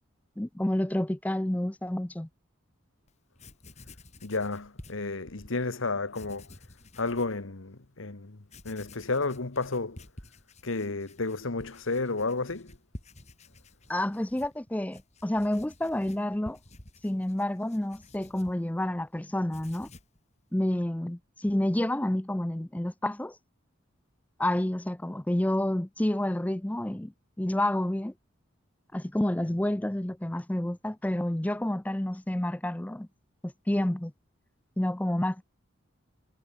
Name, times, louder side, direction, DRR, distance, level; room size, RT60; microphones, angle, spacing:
voice 1, 0.4-2.3 13.9-16.6 17.0-19.9 20.5-23.4 24.4-28.1 28.9-33.1 33.4-34.1 34.8-35.4, left 1 dB, 5° left, 0.4 m, -29 dB
Writing, 3.1-3.2 3.4-5.5 6.1-7.4 7.8-7.9 8.4-19.1 19.4-20.2, left 1 dB, 35° left, 3.6 m, -51 dB
voice 2, 4.2-6.5 7.0-8.4 8.6-10.0 10.6-12.8, left 3 dB, 80° left, 1.3 m, -32 dB
head